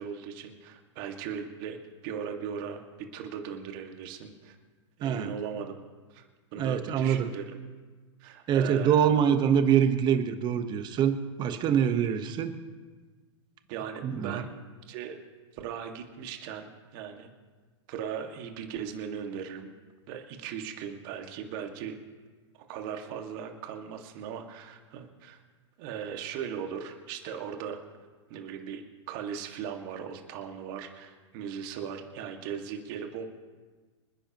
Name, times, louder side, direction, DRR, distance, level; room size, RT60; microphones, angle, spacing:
voice 1, 0.0-1.8 2.0-4.6 5.0-5.7 6.1-6.2 6.5-7.4 8.2-9.1 13.7-14.5 14.9-15.2 15.5-17.3 17.9-19.7 20.1-22.0 22.7-25.4 25.8-27.8 28.3-28.8 29.1-33.2, right 7 dB, 45° right, 4 dB, 2.0 m, -38 dB
voice 2, 5.0-5.3 6.6-7.3 8.5-12.6 14.0-14.4, right 8 dB, 30° right, 9 dB, 1.2 m, -25 dB
26.5 x 10.0 x 3.1 m, 1.4 s
hypercardioid pair, 120°, 16 cm